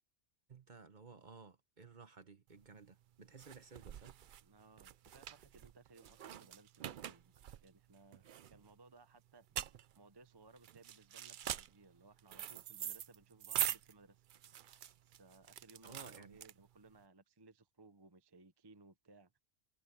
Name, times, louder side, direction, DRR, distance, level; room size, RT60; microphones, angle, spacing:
voice 1, 0.5-4.2 15.8-16.4, right 5 dB, 40° right, 1.1 m, -56 dB
sound 1, 2.6-17.0, right 10 dB, 60° right, 0.5 m, -44 dB
voice 2, 4.4-7.3 7.6-14.3 15.0-19.3, right 3 dB, 20° right, 0.8 m, -62 dB
omnidirectional pair, 1.3 m